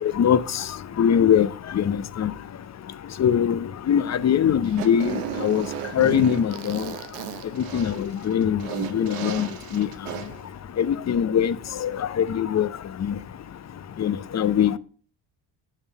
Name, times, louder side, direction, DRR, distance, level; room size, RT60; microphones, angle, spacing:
voice 1, 0.0-0.6 1.0-1.5 1.7-2.3 3.2-3.6 3.9-5.7 5.9-6.9 7.7-9.9 10.8-11.6 11.8-12.7 13.0-13.2 14.0-14.8, left 9 dB, 35° left, 0.7 m, -22 dB
Fart, 4.6-10.4, right 10 dB, 90° right, 0.9 m, -34 dB
8.0 x 5.9 x 5.4 m
supercardioid pair, 65°, 46 cm